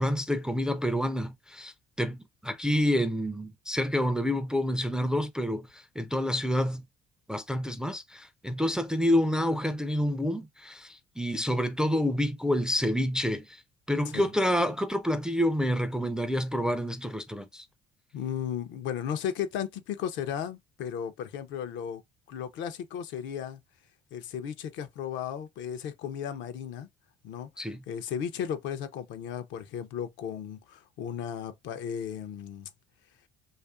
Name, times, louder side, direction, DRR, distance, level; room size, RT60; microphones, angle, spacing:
voice 1, 0.0-6.8 7.3-13.6 13.9-17.7 27.6-27.8, equal, 5° right, 0.3 m, -28 dB
voice 2, 18.1-22.0 22.3-23.6 24.1-26.9 27.2-32.7, left 8 dB, 70° left, 0.5 m, -35 dB
2.6 x 2.4 x 2.4 m
supercardioid pair, 80°, 20 cm